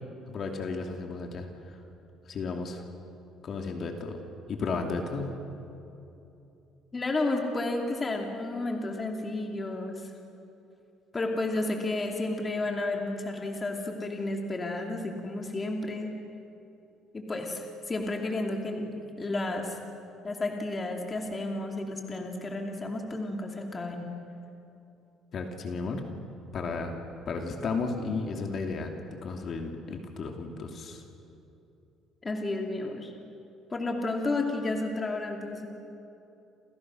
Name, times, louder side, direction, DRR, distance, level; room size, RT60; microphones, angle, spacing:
voice 1, 0.3-1.5 2.3-2.8 3.4-4.2 4.5-5.3 25.3-26.0 26.5-27.0 27.3-28.9 29.2-31.0, left 4 dB, 45° left, 3 dB, 2.8 m, -33 dB
voice 2, 6.9-10.1 11.1-16.2 17.1-19.8 20.2-24.1 32.2-33.1 33.7-35.7, left 2 dB, 20° left, 2 dB, 2.7 m, -32 dB
29.0 x 27.5 x 6.4 m, 2.8 s
cardioid pair, 140°, 0 cm